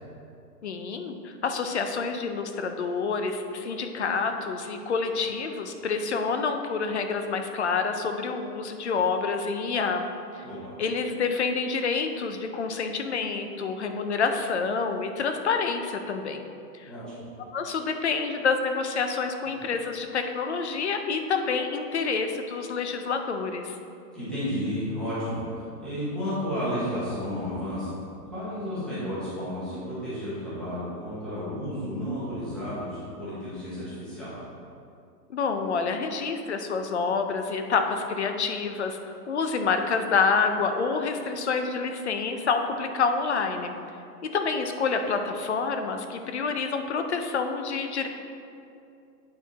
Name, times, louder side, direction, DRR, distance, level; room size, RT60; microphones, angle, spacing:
voice 1, 0.6-10.1 10.8-16.4 16.7-16.9 17.5-23.8 35.3-39.0 39.3-43.7 44.2-48.1, left 5 dB, 45° left, 6 dB, 0.5 m, -28 dB
voice 2, 10.4-10.7 16.9-17.2 19.4-19.6 24.1-28.0 28.3-34.3, equal, ahead, -13 dB, 0.9 m, -32 dB
8.8 x 4.5 x 4.0 m, 2.6 s
hypercardioid pair, 175°, 49 cm